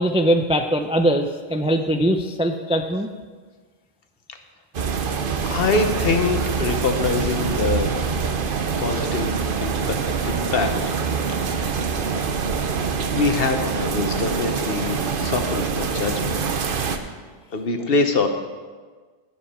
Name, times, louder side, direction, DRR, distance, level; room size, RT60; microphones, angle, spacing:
voice 1, 0.0-3.1, equal, 10° right, 5 dB, 0.3 m, -21 dB
sound 1, 4.7-17.0, right 5 dB, 60° right, 0.9 m, -25 dB
voice 2, 5.5-7.9 8.8-10.0 10.2-10.7 13.1-16.4 16.7-17.1 17.5-18.3, left 4 dB, 65° left, 6 dB, 1.2 m, -24 dB
17.0 x 7.1 x 4.3 m, 1.5 s
omnidirectional pair, 1.0 m